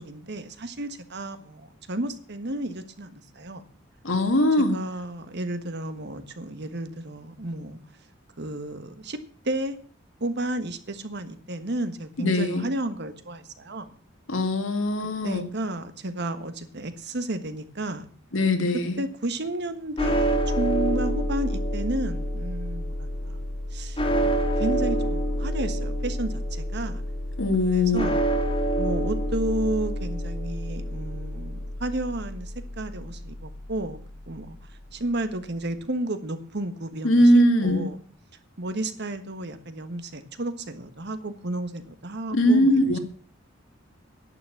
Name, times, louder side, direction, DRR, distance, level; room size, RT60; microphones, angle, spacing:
voice 1, 0.0-3.6 4.6-7.8 8.4-9.2 9.4-9.8 10.2-13.9 15.2-18.1 19.0-23.4 23.7-24.0 24.6-27.0 27.6-28.2 28.8-34.0 34.3-34.6 34.9-38.0 38.6-43.0, right 1 dB, 60° right, 10 dB, 1.5 m, -32 dB
voice 2, 4.0-4.8 12.2-12.7 14.3-15.5 18.3-19.0 27.4-28.1 37.0-37.9 42.3-43.0, left 1 dB, 80° left, 7 dB, 2.1 m, -21 dB
sound 1, 20.0-34.2, right 1 dB, 25° left, 2.1 m, -28 dB
11.0 x 9.3 x 7.1 m, 0.43 s
head